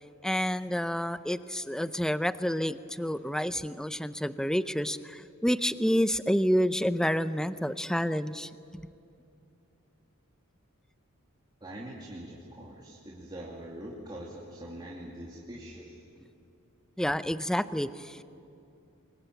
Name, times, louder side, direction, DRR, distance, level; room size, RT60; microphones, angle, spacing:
voice 1, 0.2-8.5 17.0-18.2, equal, 5° left, 13 dB, 0.6 m, -29 dB
voice 2, 11.6-16.0, right 1 dB, 20° right, -4 dB, 2.7 m, -43 dB
26.0 x 22.0 x 9.2 m, 2.6 s
head